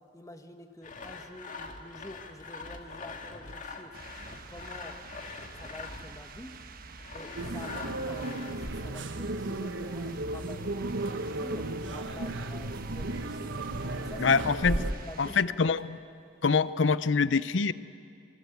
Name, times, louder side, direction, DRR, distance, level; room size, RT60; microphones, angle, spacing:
voice 1, 0.0-3.9 4.5-5.0 5.6-6.6 7.1-10.9 11.2-13.5 13.9-15.8, left 1 dB, 20° left, 6 dB, 1.7 m, -47 dB
Sawing, 0.8-6.2 7.0-9.0, left 4 dB, 45° left, 2.1 m, -43 dB
sound 1, 3.9-15.4, right 4 dB, 50° right, 1.3 m, -48 dB
sound 2, 7.4-14.9, right 2 dB, 85° right, 1.2 m, -34 dB
voice 2, 14.2-14.8 15.2-16.0 16.4-17.7, left 5 dB, 80° left, 15 dB, 0.7 m, -25 dB
27.5 x 24.0 x 8.2 m, 2.4 s
head